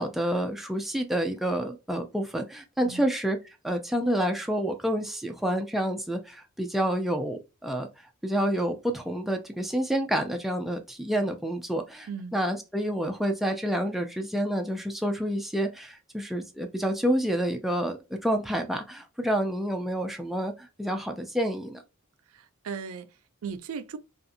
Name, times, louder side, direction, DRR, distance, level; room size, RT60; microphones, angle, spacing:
voice 1, 0.0-3.4 3.6-7.9 8.2-18.0 18.2-21.8, equal, ahead, 0.3 m, -28 dB
voice 2, 22.3-24.0, right 6 dB, 80° right, 0.4 m, -38 dB
2.6 x 2.4 x 2.5 m
head